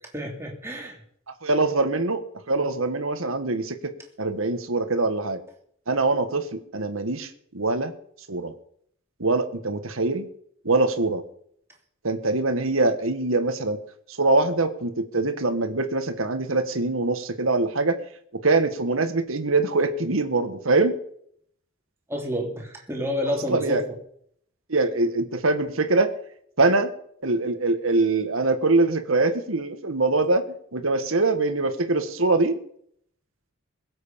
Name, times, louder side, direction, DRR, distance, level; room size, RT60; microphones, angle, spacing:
voice 1, 0.1-1.0 22.1-23.8, equal, 10° right, 0 dB, 2.8 m, -29 dB
voice 2, 1.4-5.4 5.9-7.9 8.3-8.5 9.2-10.3 10.6-11.2 12.0-13.8 14.1-18.0 18.3-20.9 23.5-23.8 24.7-26.1 26.6-26.9 27.2-30.5 30.7-32.6, right 3 dB, 75° right, 8 dB, 1.6 m, -23 dB
22.0 x 8.0 x 5.3 m, 0.67 s
head